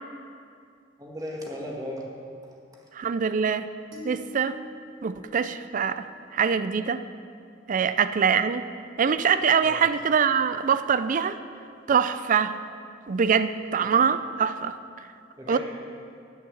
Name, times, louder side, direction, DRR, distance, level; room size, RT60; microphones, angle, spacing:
voice 1, 1.0-2.1 2.7-2.8 9.6-9.9 13.8-13.9 15.4-15.6, equal, 20° right, -1 dB, 1.7 m, -36 dB
voice 2, 2.9-3.7 4.0-4.6 5.0-7.0 7.7-8.6 9.0-11.4 11.9-12.5 13.1-14.8 15.5-15.6, right 6 dB, 45° right, 12 dB, 0.4 m, -24 dB
sound 1, 3.9-6.3, left 1 dB, 80° right, 3.1 m, -45 dB
11.0 x 6.6 x 7.2 m, 2.4 s
head